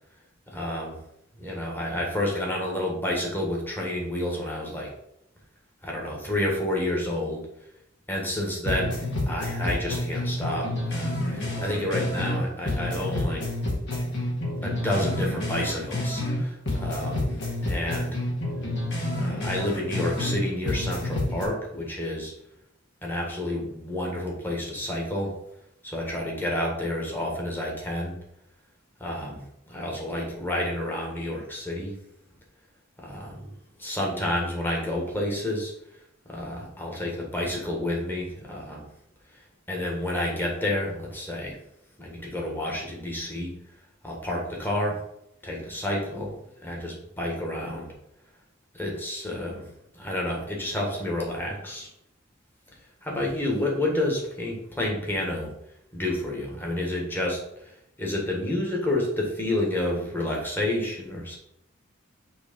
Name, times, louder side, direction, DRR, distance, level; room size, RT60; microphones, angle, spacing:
voice 1, 0.5-1.0 1.4-4.9 5.8-7.5 8.1-8.9 9.3-13.4 14.6-17.3 17.6-18.2 19.1-22.3 23.0-25.3 25.8-28.1 29.0-29.4 29.7-31.9 33.0-33.5 33.8-35.7 36.3-38.8 39.7-41.6 42.0-43.5 44.0-45.0 45.4-46.3 46.6-47.9 48.7-49.7 49.9-51.9 53.0-55.5 55.9-61.4, left 1 dB, 10° left, -2 dB, 1.5 m, -29 dB
sound 1, 8.4-8.5 8.6-12.4 12.6-16.4 16.6-20.4 20.7-21.4, left 1 dB, 60° left, 1.8 m, -29 dB
6.3 x 3.1 x 5.1 m, 0.79 s
head